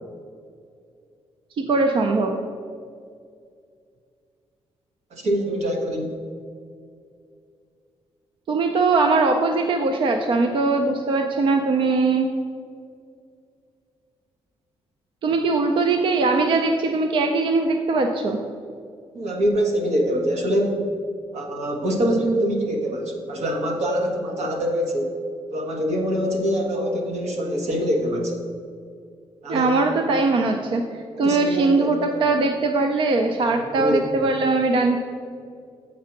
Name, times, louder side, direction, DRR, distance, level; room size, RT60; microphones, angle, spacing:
voice 1, 1.6-2.4 8.5-12.3 15.2-18.4 29.5-35.0, right 3 dB, 50° right, 4 dB, 0.5 m, -21 dB
voice 2, 5.1-6.2 19.1-20.8 21.3-25.1 25.5-28.4 29.4-29.8 31.2-31.9 33.5-34.0, equal, 80° right, 1 dB, 1.4 m, -24 dB
7.5 x 4.7 x 5.9 m, 2.3 s
wide cardioid pair, 165°, 11 cm